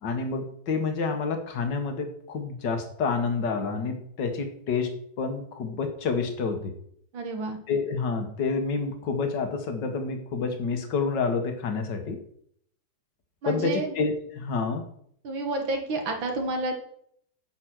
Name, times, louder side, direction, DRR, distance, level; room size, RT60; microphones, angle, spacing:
voice 1, 0.0-6.7 7.7-12.2 13.5-14.9, left 4 dB, 65° left, 5 dB, 2.1 m, -28 dB
voice 2, 7.1-7.6 13.4-13.9 15.2-16.7, right 2 dB, 90° right, 4 dB, 2.4 m, -29 dB
10.5 x 5.4 x 6.4 m, 0.66 s
omnidirectional pair, 2.0 m